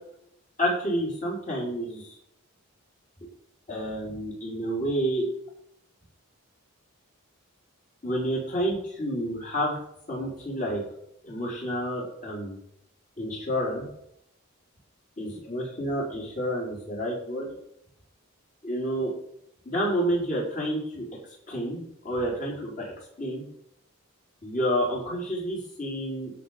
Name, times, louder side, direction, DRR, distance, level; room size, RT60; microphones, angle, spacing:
voice 1, 0.6-2.1 3.7-5.2 8.0-9.7 10.1-10.8 11.2-12.6 13.2-13.9 15.2-17.5 18.6-19.1 19.6-21.1 21.5-23.4 24.4-26.3, equal, 35° left, -3 dB, 4.8 m, -29 dB
16.5 x 5.9 x 5.3 m, 0.72 s
head